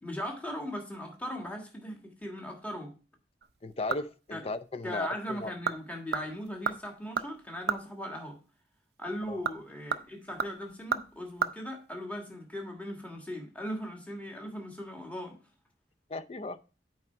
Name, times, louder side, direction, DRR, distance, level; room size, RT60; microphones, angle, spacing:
voice 1, 0.0-2.9 4.3-4.4 4.8-8.4 9.0-15.4, equal, 10° left, 1.5 m, -38 dB
sound 1, 3.4-4.3 4.7-4.8 5.4-5.8 6.1-7.9 9.2-11.5 11.8-11.9, right 5 dB, 65° right, 0.5 m, -34 dB
voice 2, 3.6-5.5 9.3-9.4 16.1-16.6, left 2 dB, 35° left, 0.5 m, -36 dB
8.5 x 4.8 x 4.4 m
head